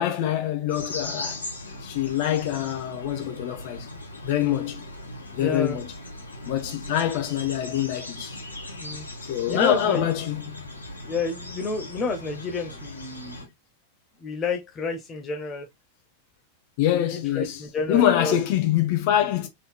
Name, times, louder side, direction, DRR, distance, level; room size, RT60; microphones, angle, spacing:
voice 1, 0.0-1.4 1.8-3.9 4.2-4.9 5.3-5.9 6.5-8.4 9.3-10.7 16.8-17.6 17.9-19.5, left 11 dB, 50° left, 1.2 m, -25 dB
sound 1, 0.7-13.5, left 1 dB, 80° left, 1.3 m, -39 dB
voice 2, 5.4-5.8 8.7-9.0 9.5-10.1 11.0-13.5 14.2-15.7 16.9-18.4, left 4 dB, 25° left, 0.9 m, -30 dB
4.0 x 3.9 x 2.2 m
figure-of-eight pair, 90°, 0 cm